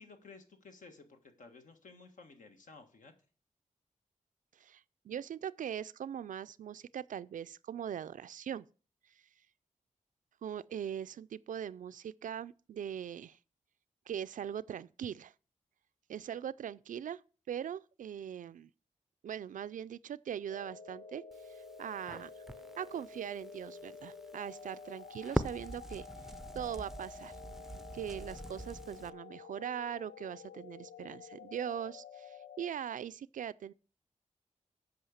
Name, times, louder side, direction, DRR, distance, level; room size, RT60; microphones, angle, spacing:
voice 1, 0.0-3.1, left 4 dB, 80° left, 1.6 m, -55 dB
voice 2, 4.6-8.7 10.4-13.4 14.1-15.3 16.1-17.2 17.5-18.7 19.2-21.2 21.8-22.4 22.8-26.1 26.5-27.3 27.9-33.7, right 9 dB, 85° right, 0.4 m, -41 dB
sound 1, 20.5-32.7, left 5 dB, 55° left, 0.7 m, -50 dB
Crackle, 21.3-29.1, right 1 dB, ahead, 0.5 m, -43 dB
8.6 x 5.6 x 7.2 m
wide cardioid pair, 135°, 13 cm